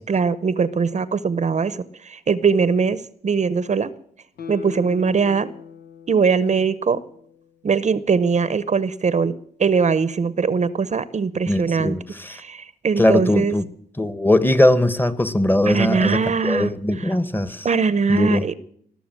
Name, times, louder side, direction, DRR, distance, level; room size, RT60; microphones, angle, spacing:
voice 1, 0.0-1.8 2.0-3.9 4.5-5.5 6.1-7.0 7.6-9.3 9.6-12.0 12.3-13.6 15.7-16.7 17.6-18.5, right 5 dB, 45° right, 16 dB, 0.8 m, -21 dB
Guitar, 4.4-7.6 8.0-8.1, left 7 dB, 80° left, 1.1 m, -40 dB
voice 2, 11.5-12.4 13.0-13.6 14.0-17.7 18.1-18.5, left 1 dB, 10° left, 14 dB, 1.2 m, -20 dB
20.0 x 6.9 x 9.0 m, 0.63 s
cardioid pair, 80°, 16 cm